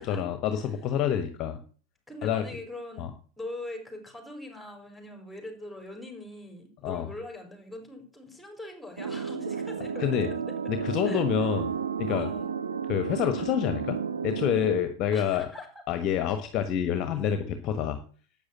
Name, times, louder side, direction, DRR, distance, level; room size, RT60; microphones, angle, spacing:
voice 1, 0.0-1.6 2.2-2.4 3.0-3.1 6.8-7.1 10.0-10.3 10.7-11.6 12.0-12.3 12.9-14.0 14.2-15.5 15.9-18.0, left 9 dB, 35° left, 9 dB, 1.4 m, -27 dB
voice 2, 2.1-3.1 3.4-10.7 11.0-11.2 12.1-12.5 15.1-15.7 16.4-16.5, left 1 dB, 5° left, 4 dB, 4.9 m, -42 dB
sound 1, 9.0-14.8, right 6 dB, 70° right, 1.5 m, -32 dB
12.0 x 9.1 x 7.4 m, 0.43 s
figure-of-eight pair, 90°, 0 cm